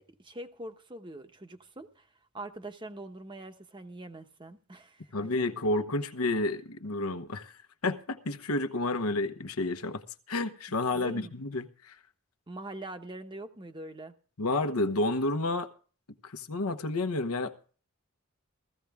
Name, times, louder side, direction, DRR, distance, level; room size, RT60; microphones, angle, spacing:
voice 1, 0.0-2.1 2.3-5.3 10.9-11.3 12.5-14.1, right 1 dB, 20° right, 0.9 m, -43 dB
voice 2, 5.1-7.5 7.8-10.0 10.3-11.9 14.4-15.7 16.2-17.5, left 2 dB, 85° left, 1.1 m, -30 dB
15.5 x 15.0 x 3.5 m
head